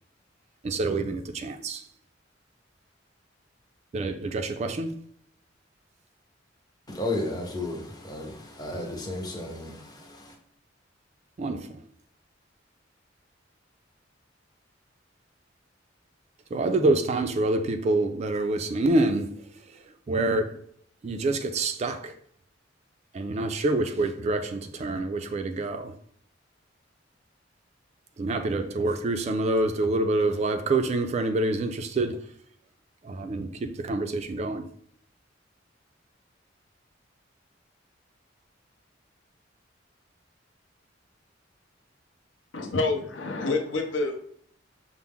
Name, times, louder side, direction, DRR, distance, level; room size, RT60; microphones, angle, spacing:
voice 1, 0.6-1.8 3.9-5.0 11.4-11.8 16.5-20.6 21.0-22.2 23.1-25.9 28.2-32.2 33.0-34.7, right 2 dB, 35° right, 0.3 m, -27 dB
voice 2, 6.9-10.4, left 2 dB, 20° left, 0.8 m, -33 dB
voice 3, 42.5-44.2, left 3 dB, 75° left, 0.7 m, -27 dB
5.7 x 2.0 x 3.6 m
head